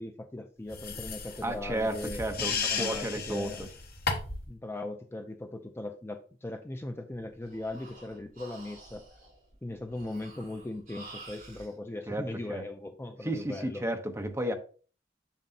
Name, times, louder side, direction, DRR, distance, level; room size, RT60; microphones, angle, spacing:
voice 1, 0.0-2.2 2.5-3.7 4.5-9.1 9.6-13.8, left 2 dB, 15° left, 0.4 m, -39 dB
sound 1, 0.7-4.5, left 5 dB, 55° left, 1.4 m, -34 dB
voice 2, 1.4-3.7 12.1-12.6 13.2-14.5, right 1 dB, 15° right, 0.8 m, -33 dB
Breathing, 7.1-11.7, right 2 dB, 45° right, 4.0 m, -50 dB
7.3 x 6.7 x 2.8 m
head